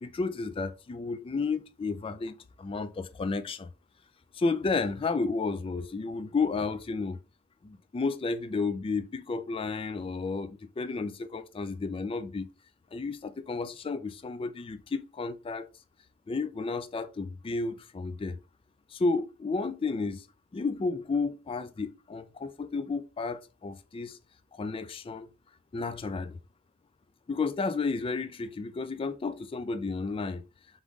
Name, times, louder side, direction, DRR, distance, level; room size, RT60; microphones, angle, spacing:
voice 1, 0.0-3.7 4.3-7.2 7.6-12.5 12.9-15.7 16.3-18.4 18.9-20.2 20.5-24.2 24.6-25.3 25.7-26.4 27.3-30.4, left 4 dB, 25° left, 0.3 m, -32 dB
3.8 x 3.7 x 3.6 m
head